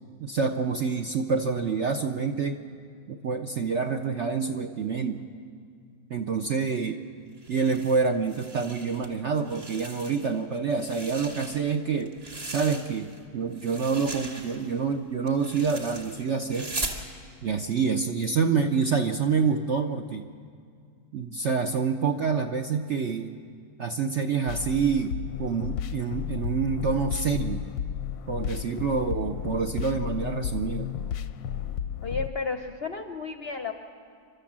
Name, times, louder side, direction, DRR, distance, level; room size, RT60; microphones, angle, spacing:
voice 1, 0.2-2.6 3.1-5.3 6.1-7.0 7.5-12.1 12.4-16.7 17.4-20.2 21.1-23.4 23.8-25.1 25.4-27.6 28.3-30.9, right 5 dB, 60° right, 5 dB, 0.8 m, -27 dB
sound 1, 7.4-9.1 9.4-10.4 10.7-13.2 13.5-17.0, right 2 dB, 35° right, 2.0 m, -39 dB
sound 2, 24.5-32.3, left 9 dB, 85° left, 1.4 m, -33 dB
voice 2, 32.0-33.7, left 4 dB, 50° left, 6 dB, 0.8 m, -32 dB
29.5 x 12.5 x 7.4 m, 2.2 s
omnidirectional pair, 2.0 m